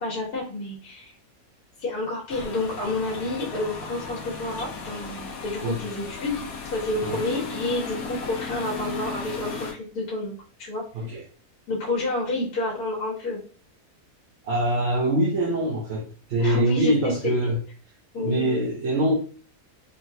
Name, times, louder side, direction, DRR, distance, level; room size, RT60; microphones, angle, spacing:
voice 1, 0.0-1.1 1.8-6.4 6.7-10.8 11.7-13.4 16.4-17.3 18.1-18.6, left 2 dB, 85° left, 1.5 m, -29 dB
sound 1, 2.3-9.7, left 4 dB, 70° left, 1.1 m, -36 dB
voice 2, 14.4-17.6 18.2-19.1, right 1 dB, 60° right, 0.8 m, -24 dB
3.9 x 2.0 x 2.7 m
omnidirectional pair, 1.6 m